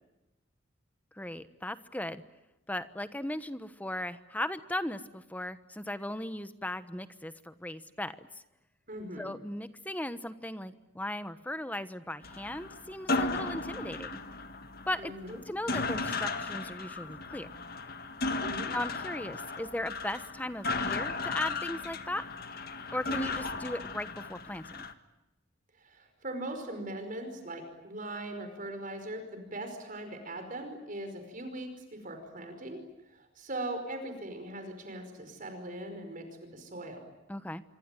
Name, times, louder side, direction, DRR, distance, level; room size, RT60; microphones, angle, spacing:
voice 1, 1.1-2.2 2.7-8.4 9.2-14.1 14.9-17.5 18.7-22.2 22.9-24.8 37.3-37.6, left 1 dB, 10° left, 12 dB, 1.1 m, -37 dB
voice 2, 8.9-9.3 15.0-15.4 18.4-18.7 25.8-32.8 33.1-37.0, right 1 dB, 45° right, 7 dB, 5.1 m, -40 dB
sound 1, 12.2-24.9, left 3 dB, 50° left, 1.7 m, -35 dB
26.5 x 24.5 x 9.1 m, 0.96 s
head